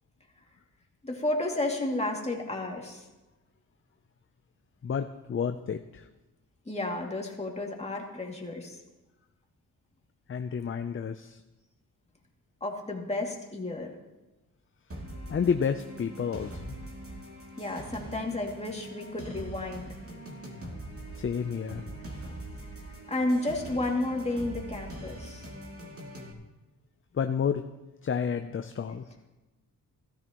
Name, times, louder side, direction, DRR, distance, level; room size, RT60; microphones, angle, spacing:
voice 1, 1.0-3.1 6.6-8.8 12.6-13.9 17.6-19.9 23.1-25.5, left 2 dB, 20° left, 0 dB, 2.5 m, -32 dB
voice 2, 4.8-6.1 10.3-11.4 15.3-16.6 21.1-21.8 27.1-27.6 28.0-29.0, left 7 dB, 35° left, 7 dB, 0.6 m, -30 dB
sound 1, 14.9-26.3, right 1 dB, 40° right, 2.6 m, -42 dB
16.5 x 13.5 x 3.1 m, 1.1 s
cardioid pair, 80°, 35 cm